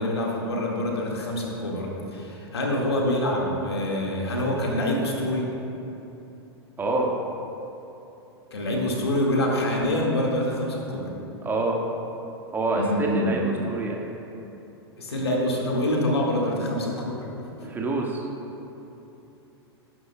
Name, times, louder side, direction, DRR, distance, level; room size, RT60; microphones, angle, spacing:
voice 1, 0.0-5.6 8.5-11.1 12.8-13.4 15.0-17.5, left 1 dB, 70° left, -1 dB, 1.8 m, -26 dB
voice 2, 6.8-7.1 11.4-11.8 12.5-14.0 17.6-18.3, right 2 dB, 15° right, -1 dB, 1.6 m, -26 dB
19.0 x 9.6 x 2.2 m, 3.0 s
figure-of-eight pair, 95°, 14 cm